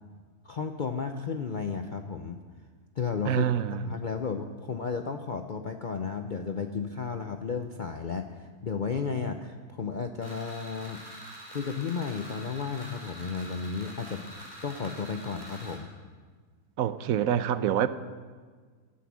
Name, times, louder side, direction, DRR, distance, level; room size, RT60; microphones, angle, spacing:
voice 1, 0.4-2.4 3.0-3.4 3.7-11.0 11.5-14.3 14.6-15.9, left 5 dB, 50° left, 6 dB, 0.6 m, -33 dB
voice 2, 3.3-3.8 16.8-17.9, right 10 dB, 70° right, 13 dB, 1.0 m, -26 dB
sound 1, 10.2-15.8, right 1 dB, 15° right, 3.8 m, -45 dB
15.5 x 11.5 x 6.2 m, 1.5 s
omnidirectional pair, 1.6 m